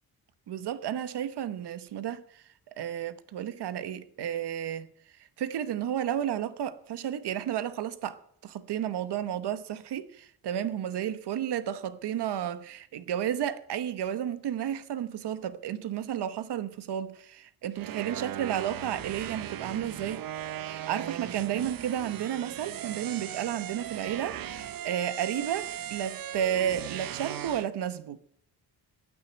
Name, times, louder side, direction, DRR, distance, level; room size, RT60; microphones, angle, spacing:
voice 1, 0.5-2.4 2.8-4.9 5.4-20.2 20.6-28.2, right 10 dB, 85° right, 1.0 m, -32 dB
sound 1, 17.8-27.7, right 11 dB, 60° right, 0.7 m, -38 dB
12.5 x 9.0 x 8.0 m
wide cardioid pair, 125°, 39 cm